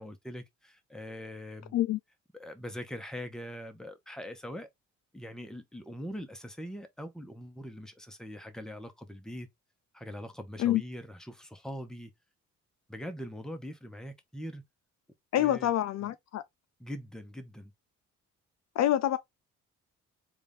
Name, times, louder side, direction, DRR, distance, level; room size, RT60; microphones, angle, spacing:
voice 1, 0.0-1.8 2.3-4.7 5.1-9.5 9.9-12.1 12.9-14.6 15.4-15.7 16.0-16.1 16.8-17.7, equal, ahead, 0.9 m, -42 dB
voice 2, 15.3-16.4 18.8-19.2, left 12 dB, 60° left, 0.4 m, -26 dB
3.8 x 2.5 x 3.5 m
cardioid pair, 90°, 30 cm